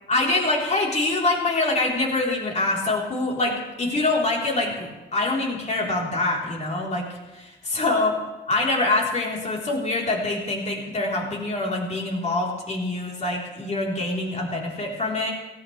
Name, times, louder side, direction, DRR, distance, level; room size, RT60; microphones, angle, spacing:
voice 1, 0.1-7.1 7.3-8.1 8.5-15.3, left 2 dB, 35° left, -2 dB, 3.8 m, -25 dB
17.0 x 15.0 x 3.3 m, 1.1 s
cardioid pair, 90°, 20 cm